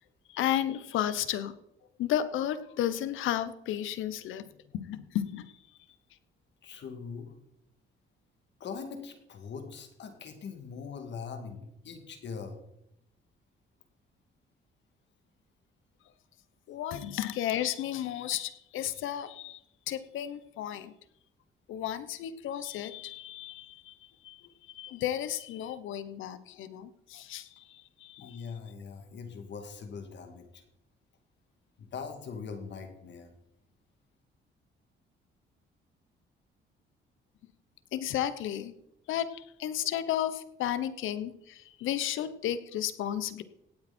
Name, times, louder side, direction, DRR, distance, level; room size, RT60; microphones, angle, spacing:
voice 1, 0.3-1.5 2.0-4.5 4.7-5.6 16.7-19.6 19.9-20.9 21.7-28.4 37.9-38.7 39.1-43.4, left 11 dB, 85° left, 13 dB, 1.0 m, -33 dB
voice 2, 6.6-7.3 8.6-12.6 28.2-30.6 31.8-33.3, left 5 dB, 65° left, 5 dB, 2.7 m, -42 dB
17.5 x 9.0 x 4.4 m, 0.81 s
cardioid pair, 90°, 20 cm